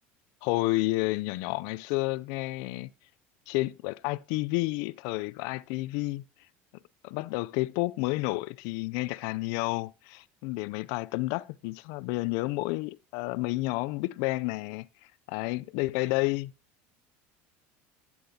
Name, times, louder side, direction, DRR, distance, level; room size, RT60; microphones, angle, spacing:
voice 1, 0.4-2.9 3.5-6.2 7.0-14.9 15.3-16.5, left 21 dB, 70° left, 0.4 m, -30 dB
11.5 x 8.7 x 2.7 m
supercardioid pair, 135°, 6 cm